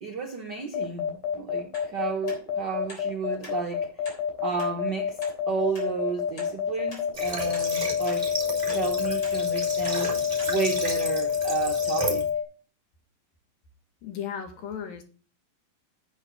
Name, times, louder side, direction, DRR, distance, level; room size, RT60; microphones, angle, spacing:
voice 1, 0.0-3.9 4.4-5.2 5.5-8.3 8.6-10.1 10.5-12.3, right 5 dB, 75° right, 0.9 m, -32 dB
sound 1, 0.7-12.4, left 8 dB, 70° left, 4.7 m, -27 dB
sound 2, 1.7-1.9 2.3-2.4 2.9-3.1 3.4-3.6 4.0-4.2 4.6-4.7 5.2-5.3 5.7-5.9 6.4-6.5 6.9-7.1 7.5-7.7 8.1-8.2 8.7-8.8 9.2-9.4 9.8-10.0 10.4-10.5 11.0-11.1, left 1 dB, 30° left, 3.9 m, -44 dB
Water / Water tap faucet, 7.1-12.3, right 2 dB, 10° right, 2.8 m, -34 dB
voice 2, 14.0-15.0, left 8 dB, 85° left, 3.8 m, -35 dB
9.9 x 8.6 x 3.8 m
omnidirectional pair, 4.0 m